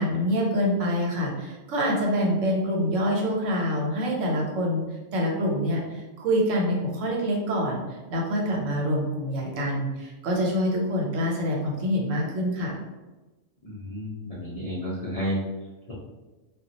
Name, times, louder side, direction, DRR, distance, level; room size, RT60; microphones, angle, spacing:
voice 1, 0.0-4.8 5.1-7.8 8.1-12.8, equal, 75° right, -1 dB, 1.1 m, -26 dB
voice 2, 13.6-15.4, equal, 45° left, -8 dB, 0.5 m, -31 dB
2.3 x 2.2 x 3.9 m, 1.1 s
omnidirectional pair, 1.3 m